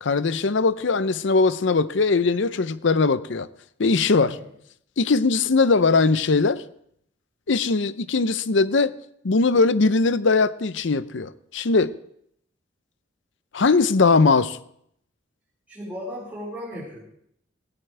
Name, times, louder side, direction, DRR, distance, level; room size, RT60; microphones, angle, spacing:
voice 1, 0.0-3.5 3.8-4.4 5.0-6.6 7.5-8.9 9.2-11.9 13.5-14.6, left 4 dB, 65° left, 0.6 m, -20 dB
voice 2, 15.7-17.0, equal, 10° right, 4.8 m, -35 dB
17.0 x 17.0 x 3.4 m
head